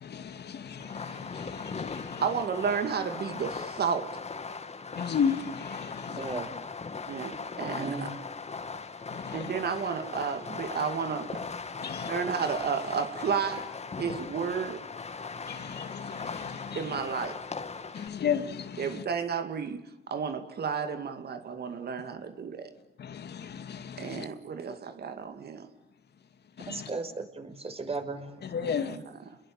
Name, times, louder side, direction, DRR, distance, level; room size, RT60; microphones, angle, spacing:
voice 1, 0.0-2.2 5.0-6.4 9.1-9.4 11.8-12.1 15.5-16.8 17.9-19.0 23.0-24.2 26.6-26.9 28.4-29.0, left 7 dB, 55° left, 2.2 m, -34 dB
Fireworks, 0.8-18.1, left 4 dB, 35° left, 2.5 m, -39 dB
voice 2, 2.2-4.2 7.1-8.1 9.3-11.4 12.0-14.9 16.7-17.4 18.8-22.7 24.0-25.7 28.6-29.4, right 6 dB, 55° right, 2.4 m, -32 dB
voice 3, 7.6-8.1 26.7-28.3, right 3 dB, 30° right, 5.6 m, -35 dB
29.5 x 22.0 x 8.9 m
cardioid pair, 90°, 20 cm